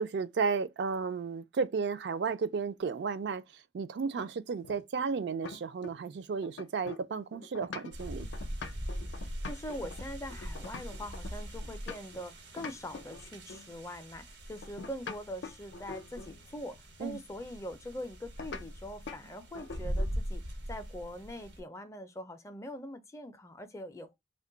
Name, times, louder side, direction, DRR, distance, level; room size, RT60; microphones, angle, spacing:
voice 1, 0.0-3.4 3.7-8.3 17.0-17.2, right 5 dB, 65° right, 0.4 m, -33 dB
sound 1, 4.2-6.1 6.4-12.2 12.6-13.7 14.6-16.4 18.4-18.7 19.1-19.2 19.5-20.2, left 4 dB, 90° left, 0.5 m, -45 dB
sound 2, 7.9-21.6, equal, 90° right, 1.1 m, -41 dB
voice 2, 9.2-20.4 20.7-24.2, left 1 dB, 15° left, 0.4 m, -43 dB
2.8 x 2.2 x 3.8 m
head